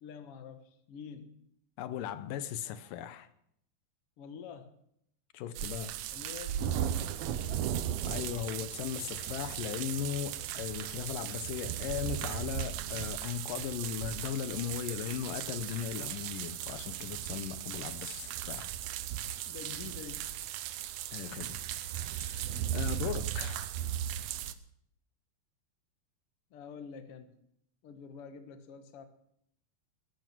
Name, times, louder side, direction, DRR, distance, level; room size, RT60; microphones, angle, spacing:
voice 1, 0.0-1.5 4.2-4.7 6.1-7.7 19.5-20.4 24.3-24.5 26.5-27.3 27.8-29.0, left 7 dB, 55° left, 2.0 m, -47 dB
voice 2, 1.8-3.3 5.3-6.0 8.1-18.7 21.1-23.7, left 10 dB, 85° left, 2.5 m, -38 dB
sound 1, 5.5-24.5, right 11 dB, 75° right, 1.6 m, -37 dB
20.0 x 11.5 x 6.1 m
omnidirectional pair, 3.8 m